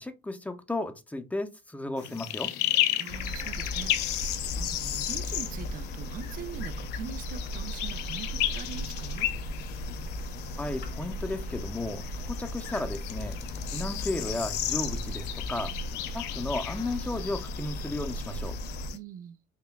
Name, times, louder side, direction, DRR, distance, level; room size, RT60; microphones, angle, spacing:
voice 1, 0.0-2.5 10.6-13.4 13.7-15.7 16.1-18.6, left 2 dB, 10° left, 0.5 m, -34 dB
sound 1, 2.0-19.0, left 13 dB, 90° left, 0.5 m, -34 dB
voice 2, 3.0-9.3 18.9-19.4, right 8 dB, 55° right, 0.4 m, -42 dB
sound 2, 3.1-18.9, equal, 60° left, 0.8 m, -37 dB
5.5 x 2.2 x 2.2 m
cardioid pair, 110°, 17 cm